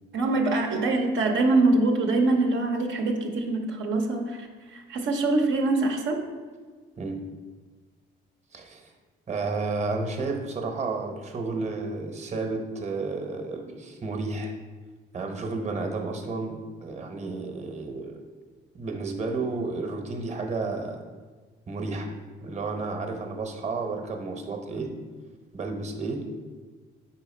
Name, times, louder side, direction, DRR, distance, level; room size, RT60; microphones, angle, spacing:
voice 1, 0.1-6.2, right 2 dB, 70° right, 2 dB, 0.7 m, -24 dB
voice 2, 8.5-8.9 9.3-14.5 15.1-18.2 18.7-21.0 21.7-22.1 22.4-24.9 25.5-26.4, right 3 dB, 35° right, 4 dB, 0.9 m, -32 dB
4.9 x 4.5 x 4.3 m, 1.4 s
cardioid pair, 90°, 20 cm